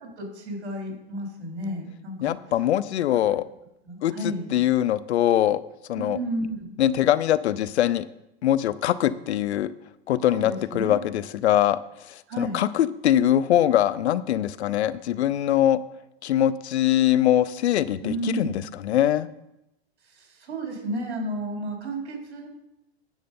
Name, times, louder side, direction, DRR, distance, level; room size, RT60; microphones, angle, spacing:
voice 1, 0.2-2.3 3.2-3.4 3.8-4.5 6.0-6.7 10.2-11.0 12.3-12.6 18.0-18.6 20.0-22.5, right 1 dB, 75° right, 0 dB, 4.3 m, -32 dB
voice 2, 2.2-3.5 4.0-5.6 5.9-6.2 6.8-8.1 8.4-9.7 10.1-11.8 12.1-15.8 16.2-19.3, left 12 dB, 75° left, 17 dB, 0.6 m, -22 dB
9.3 x 7.6 x 5.4 m, 0.88 s
hypercardioid pair, 145°, 33 cm